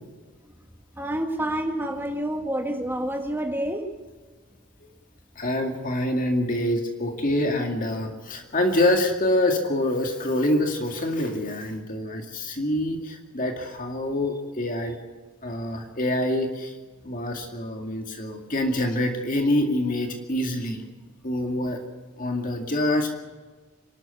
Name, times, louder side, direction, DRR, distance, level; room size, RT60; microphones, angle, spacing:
voice 1, 1.0-3.8, right 1 dB, 10° right, 4 dB, 1.8 m, -28 dB
voice 2, 5.4-15.0 15.4-16.7 17.0-20.8 21.2-21.8 22.2-23.2, left 1 dB, 40° left, 3 dB, 2.2 m, -26 dB
26.0 x 12.5 x 8.3 m, 1.3 s
head